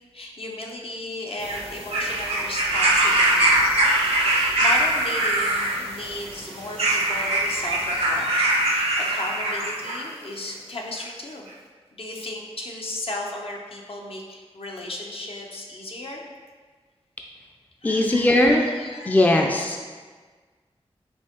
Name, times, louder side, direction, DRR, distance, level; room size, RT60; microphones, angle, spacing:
voice 1, 0.1-3.7 4.2-11.4 11.9-16.2 17.8-19.2, left 2 dB, 60° left, -1 dB, 0.6 m, -35 dB
sound 1, 1.4-10.1 11.0-11.1, right 1 dB, 80° right, 0.7 m, -22 dB
voice 2, 17.8-18.7 19.1-19.9, left 1 dB, 15° left, 1 dB, 0.4 m, -19 dB
5.4 x 2.7 x 2.9 m, 1.5 s
wide cardioid pair, 60°, 11 cm